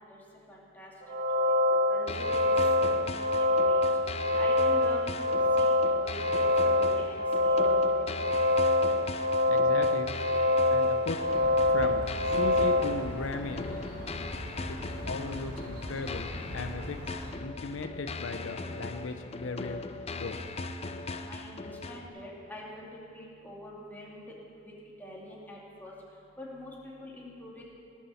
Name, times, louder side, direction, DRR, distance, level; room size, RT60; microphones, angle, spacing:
voice 1, 0.5-0.9 1.3-1.6 1.9-2.5 2.8-3.8 4.4-5.7 6.0-8.4 21.3-22.9 23.1-24.2 24.6-24.7 25.0-25.9 26.4-27.6, left 1 dB, 10° left, -4 dB, 2.5 m, -45 dB
sound 1, 1.0-12.8, left 2 dB, 75° right, 1.4 m, -25 dB
sound 2, 2.1-22.1, left 3 dB, 30° left, 0.5 m, -39 dB
voice 2, 9.5-10.1 10.7-11.2 11.7-13.7 14.7-17.0 17.3-19.8 20.1-20.4, left 3 dB, 85° left, 7 dB, 0.7 m, -37 dB
sound 3, 11.3-17.3, equal, 45° right, 2.1 m, -41 dB
18.0 x 7.2 x 7.1 m, 2.4 s
head